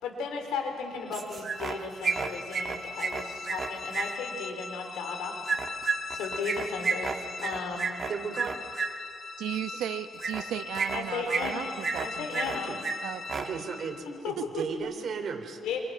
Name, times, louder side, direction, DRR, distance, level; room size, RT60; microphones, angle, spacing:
voice 1, 0.0-5.4 6.1-8.0 10.9-12.8 14.1-14.3 15.6-15.8, left 5 dB, 90° left, 4 dB, 4.5 m, -35 dB
sound 1, 0.9-14.2, left 4 dB, 50° left, 1.6 m, -41 dB
sound 2, 1.1-1.8 2.0-4.0 5.4-8.9 10.2-10.4 10.7-11.5 11.8-12.6 12.8-12.9 13.2-13.4, right 5 dB, 40° right, 2.0 m, -30 dB
voice 2, 8.1-8.6 12.4-12.8 13.4-15.6, right 5 dB, 55° right, 5 dB, 3.5 m, -36 dB
voice 3, 9.4-12.6 13.0-13.6 14.4-14.9, right 11 dB, 90° right, 10 dB, 1.1 m, -36 dB
27.5 x 27.5 x 6.2 m, 2.2 s
cardioid pair, 90°, 0 cm